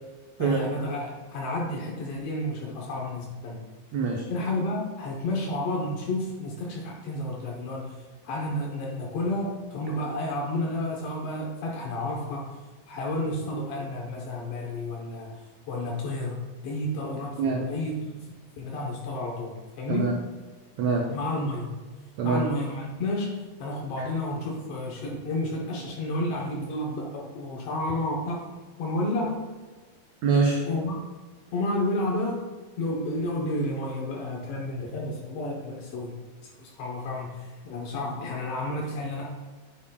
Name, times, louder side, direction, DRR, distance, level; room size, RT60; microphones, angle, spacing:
voice 1, 0.4-3.6 4.3-8.0 8.2-12.6 12.9-15.4 15.7-18.0 18.6-20.2 21.1-21.8 22.2-28.5 28.8-29.5 30.6-31.0 31.5-32.5 32.8-36.2 36.6-39.3, left 1 dB, 70° left, -2 dB, 1.5 m, -31 dB
voice 2, 3.9-4.3 17.4-17.7 19.9-20.1 20.8-21.1 22.2-22.4 24.0-24.1 30.2-30.6, right 4 dB, 85° right, 1 dB, 1.5 m, -24 dB
9.6 x 7.6 x 2.3 m, 1.3 s
omnidirectional pair, 4.1 m